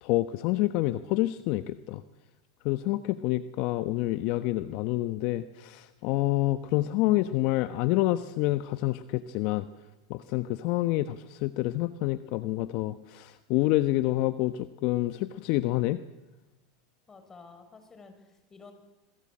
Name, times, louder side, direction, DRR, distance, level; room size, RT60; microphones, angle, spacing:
voice 1, 0.0-2.0 2.6-9.7 10.1-16.0, left 17 dB, 55° left, 12 dB, 1.0 m, -28 dB
voice 2, 17.1-18.7, left 4 dB, 20° left, 7 dB, 6.2 m, -51 dB
27.0 x 22.0 x 8.7 m, 1.1 s
hypercardioid pair, 115°, 2 cm